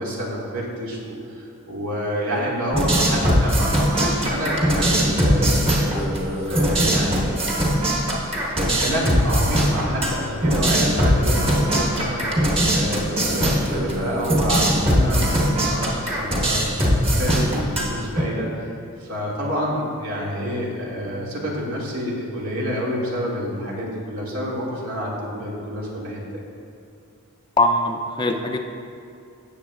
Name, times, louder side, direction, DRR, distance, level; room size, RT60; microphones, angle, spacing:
voice 1, 0.0-5.9 6.4-7.3 8.2-12.3 12.7-16.7 17.0-18.7 19.0-26.4, equal, 75° right, -4 dB, 2.1 m, -28 dB
sound 1, 2.7-18.2, equal, 25° right, 1.3 m, -21 dB
voice 2, 27.6-28.6, left 2 dB, 20° left, 4 dB, 0.4 m, -21 dB
17.0 x 7.1 x 2.4 m, 2.5 s
head